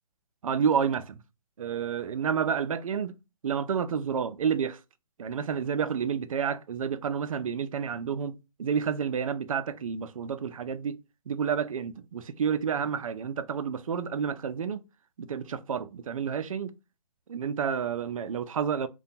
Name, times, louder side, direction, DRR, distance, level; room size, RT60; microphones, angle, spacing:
voice 1, 0.4-1.2 1.6-3.2 3.4-4.8 5.2-11.0 11.3-14.8 15.2-16.7 17.3-18.9, right 7 dB, 70° right, 0.4 m, -30 dB
2.5 x 2.2 x 2.7 m
figure-of-eight pair, 140°, 18 cm